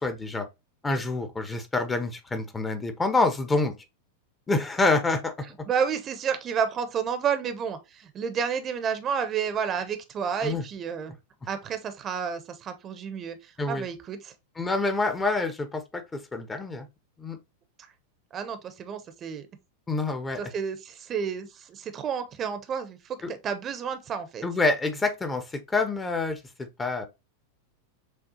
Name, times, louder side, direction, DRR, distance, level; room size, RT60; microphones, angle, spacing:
voice 1, 0.0-0.5 0.8-3.7 4.5-5.3 10.4-10.6 13.6-13.9 14.6-16.9 17.2-17.4 19.9-20.4 23.2-23.3 24.4-26.4 26.8-27.0, left 3 dB, 15° left, 0.6 m, -27 dB
voice 2, 5.7-11.1 11.5-14.3 18.3-19.5 20.4-24.4, right 7 dB, 30° right, 0.6 m, -30 dB
6.3 x 2.3 x 2.7 m
figure-of-eight pair, 90°, 0 cm